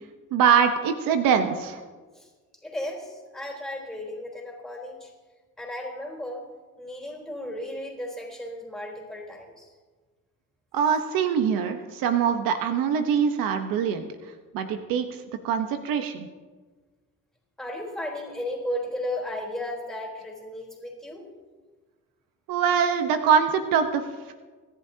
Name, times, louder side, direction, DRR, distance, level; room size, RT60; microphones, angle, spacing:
voice 1, 0.3-1.8 10.7-14.1 14.5-15.1 15.4-16.3 22.5-24.3, right 7 dB, 80° right, 7 dB, 1.0 m, -23 dB
voice 2, 2.6-5.1 5.6-6.5 6.8-9.7 17.6-21.3, left 1 dB, ahead, -1 dB, 3.9 m, -35 dB
25.5 x 11.0 x 2.8 m, 1.4 s
cardioid pair, 105°, 34 cm